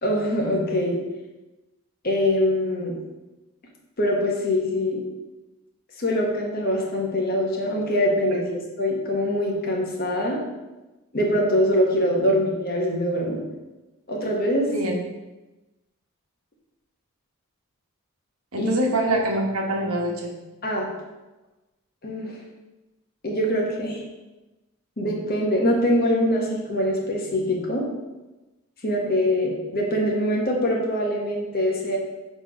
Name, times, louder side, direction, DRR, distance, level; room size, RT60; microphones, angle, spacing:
voice 1, 0.0-1.0 2.0-3.0 4.0-5.0 6.0-8.4 8.8-10.4 11.1-13.4 14.1-14.9 18.6-18.7 20.6-20.9 22.0-22.4 23.2-24.0 25.0-27.9 28.8-32.0, equal, 40° left, -1 dB, 1.3 m, -23 dB
voice 2, 18.5-20.3, right 1 dB, 75° right, 0 dB, 1.3 m, -25 dB
6.8 x 3.5 x 5.1 m, 1.1 s
head